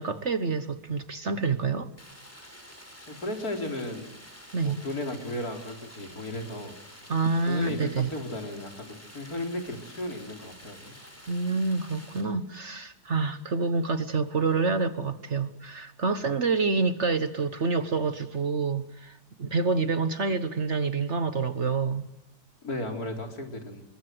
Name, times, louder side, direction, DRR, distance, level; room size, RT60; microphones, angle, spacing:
voice 1, 0.0-1.9 4.5-4.8 7.1-8.1 11.3-22.0, right 4 dB, 45° right, 12 dB, 1.4 m, -27 dB
Stream, 2.0-12.2, equal, 10° left, 5.8 m, -49 dB
voice 2, 3.0-4.1 4.6-6.7 7.5-11.0 22.6-23.8, left 1 dB, 60° left, 4 dB, 4.6 m, -35 dB
29.0 x 22.5 x 7.8 m, 0.86 s
omnidirectional pair, 1.8 m